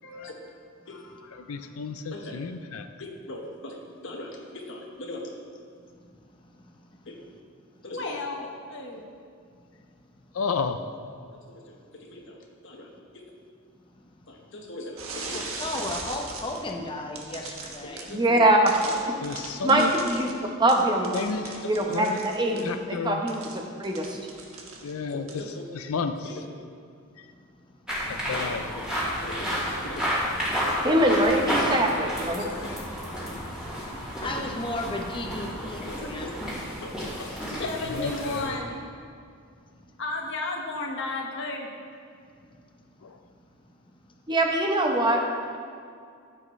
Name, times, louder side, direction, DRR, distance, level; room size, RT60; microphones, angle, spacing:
voice 1, 0.9-1.7 2.1-2.3 3.0-5.3 7.1-7.2 7.8-9.1 11.3-13.2 14.3-15.5 17.8-18.4 18.8-19.2 21.6-21.9 22.5-22.7 25.1-25.6 26.2-26.4 28.8-28.9 29.2-30.2 31.1-31.2 32.3-32.8 33.0-33.7 34.2-34.4 35.6-36.3 36.8-38.9 40.0-41.7, left 2 dB, 60° left, 1 dB, 1.4 m, -37 dB
voice 2, 1.5-2.9 10.3-10.8 19.2-19.9 21.1-21.6 21.9-22.2 22.6-23.2 24.8-25.3 25.7-26.3 28.1-28.7 37.9-38.5 43.0-43.1, left 5 dB, 85° left, 8 dB, 0.5 m, -31 dB
voice 3, 6.5-6.8 14.0-14.1 15.2-18.1 24.6-24.7 27.2-28.0 34.2-36.3 39.7-39.8 42.4-42.5, left 1 dB, 25° left, 2 dB, 0.8 m, -35 dB
sound 1, 15.0-16.7 17.2-18.2 18.7-22.7 23.3-25.0 25.3-25.5, right 3 dB, 80° right, 1.3 m, -39 dB
voice 4, 18.1-18.7 19.6-20.3 20.6-21.1 21.7-22.6 22.9-23.4 23.8-24.2 30.8-32.4 44.3-45.2, right 1 dB, 20° right, 1 dB, 0.9 m, -22 dB
sound 2, 27.9-38.5, equal, 5° right, 2.8 m, -31 dB
14.5 x 7.6 x 3.2 m, 2.3 s
head